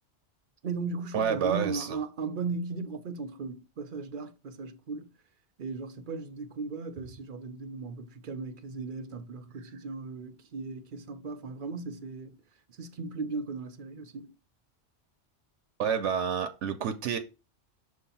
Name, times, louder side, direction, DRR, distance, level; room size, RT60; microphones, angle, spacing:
voice 1, 0.6-5.1 5.6-12.4 12.7-14.4, right 4 dB, 55° right, 0.7 m, -37 dB
voice 2, 1.1-2.0 15.8-17.2, right 7 dB, 80° right, 1.0 m, -29 dB
6.3 x 2.8 x 5.4 m
omnidirectional pair, 1.2 m